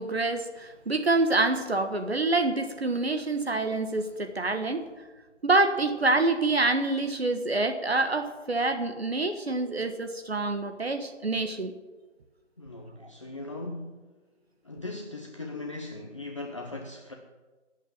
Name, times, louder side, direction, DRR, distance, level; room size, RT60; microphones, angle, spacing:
voice 1, 0.0-4.8 5.4-11.7, right 2 dB, 55° right, 7 dB, 1.5 m, -26 dB
voice 2, 12.6-14.0 14.6-17.1, left 2 dB, 25° left, 1 dB, 0.9 m, -39 dB
19.5 x 8.5 x 8.8 m, 1.3 s
figure-of-eight pair, 165°, 37 cm